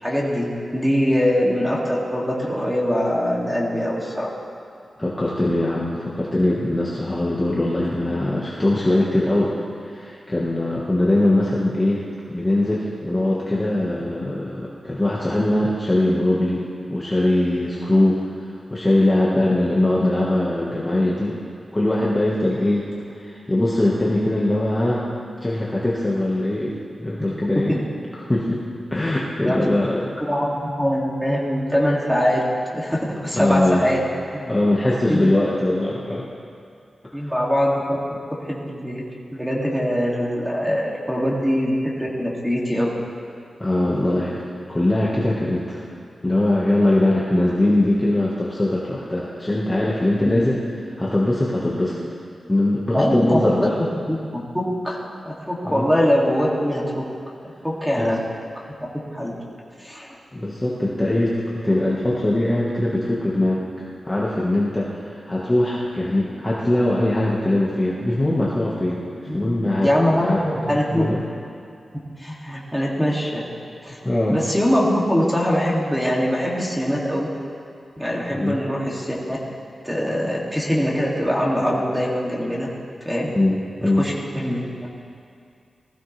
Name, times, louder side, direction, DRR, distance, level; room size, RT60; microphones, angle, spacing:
voice 1, 0.0-4.3 19.4-19.5 27.5-27.8 29.4-29.6 30.2-32.5 32.7-34.0 34.3-34.5 35.1-35.3 37.1-38.0 38.4-39.0 39.3-42.9 50.2-50.3 52.9-53.6 54.1-54.4 54.8-55.0 55.2-57.0 57.6-58.2 59.1-59.3 59.8-60.1 69.3-69.5 69.8-71.1 72.2-73.4 73.8-74.0 74.3-77.3 78.0-79.4 79.8-82.7 83.0-83.3 83.8-84.9, equal, ahead, -4 dB, 2.5 m, -22 dB
voice 2, 5.0-9.5 9.8-12.0 12.3-16.6 16.9-18.3 18.7-21.4 21.7-22.9 23.2-25.1 25.4-27.8 28.3-30.1 33.3-33.9 34.5-36.3 43.6-44.4 44.7-45.8 46.2-50.6 51.0-52.0 52.5-53.8 55.6-55.9 58.0-58.1 60.3-61.4 61.6-63.6 64.0-71.2 74.0-74.4 78.3-78.6 83.3-84.1, left 1 dB, 15° left, -6 dB, 1.6 m, -21 dB
20.0 x 15.0 x 3.4 m, 2.4 s
wide cardioid pair, 125°, 0 cm